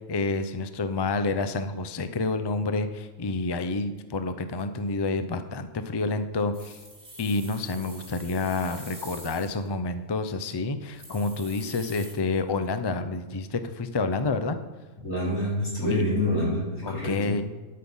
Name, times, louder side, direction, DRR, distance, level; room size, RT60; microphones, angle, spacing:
voice 1, 0.1-6.8 7.2-14.6 15.8-16.0 16.8-17.4, left 3 dB, 30° left, 10 dB, 0.4 m, -29 dB
sound 1, 6.5-9.7 10.2-10.3 10.6-10.7 10.9-12.1, right 2 dB, 70° right, 3.6 m, -45 dB
voice 2, 15.0-17.4, left 1 dB, 80° left, -6 dB, 4.7 m, -27 dB
12.5 x 6.6 x 5.5 m, 1.3 s
omnidirectional pair, 1.3 m